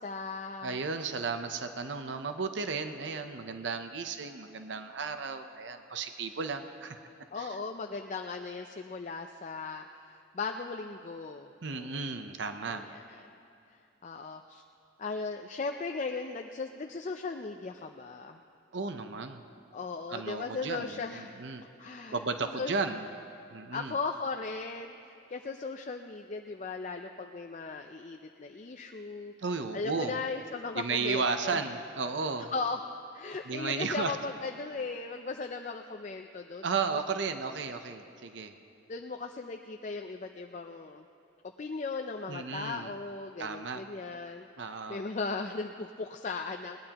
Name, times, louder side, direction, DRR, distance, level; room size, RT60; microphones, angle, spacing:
voice 1, 0.0-0.8 7.3-12.2 12.7-13.3 13.7-14.6 15.0-18.4 19.7-21.4 21.8-22.7 23.7-29.3 29.7-31.6 32.5-32.8 33.1-36.8 38.9-41.1 41.6-46.8, left 4 dB, 40° left, 4 dB, 0.4 m, -37 dB
voice 2, 0.6-7.0 7.4-7.6 11.6-12.8 18.7-19.4 20.1-21.7 22.1-23.1 23.5-24.0 29.4-30.2 30.8-32.5 33.3-34.2 36.6-38.5 42.3-43.0 43.4-43.8 44.6-45.0, right 4 dB, 65° right, 7 dB, 0.7 m, -34 dB
21.0 x 18.0 x 2.9 m, 2.6 s
head